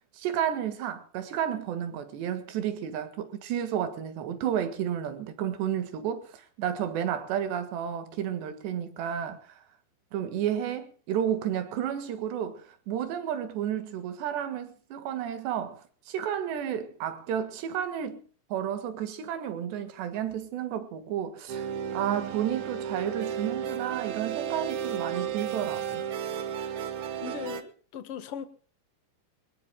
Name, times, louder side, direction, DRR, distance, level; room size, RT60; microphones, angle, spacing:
voice 1, 0.2-9.6 10.1-18.2 18.5-21.7 21.9-26.0, right 9 dB, 90° right, 3.8 m, -32 dB
sound 1, 21.5-27.6, right 9 dB, 60° right, 2.1 m, -33 dB
voice 2, 27.2-28.4, left 8 dB, 60° left, 1.5 m, -38 dB
23.5 x 20.5 x 2.2 m
omnidirectional pair, 4.7 m